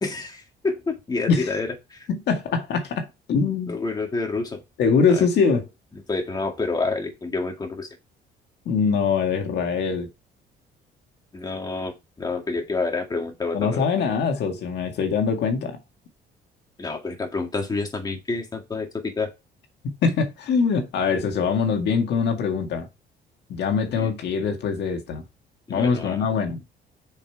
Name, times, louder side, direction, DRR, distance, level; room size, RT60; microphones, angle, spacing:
voice 1, 0.0-2.1 3.7-4.6 5.1-5.3 6.1-7.9 11.3-13.8 16.8-19.3 23.9-24.1 25.7-26.3, left 3 dB, 20° left, 2.1 m, -28 dB
voice 2, 2.1-3.8 4.8-5.7 8.7-10.1 13.5-15.8 19.8-22.9 23.5-25.2 25.7-26.6, left 5 dB, 70° left, 2.0 m, -23 dB
7.1 x 5.6 x 4.6 m
cardioid pair, 120°, 18 cm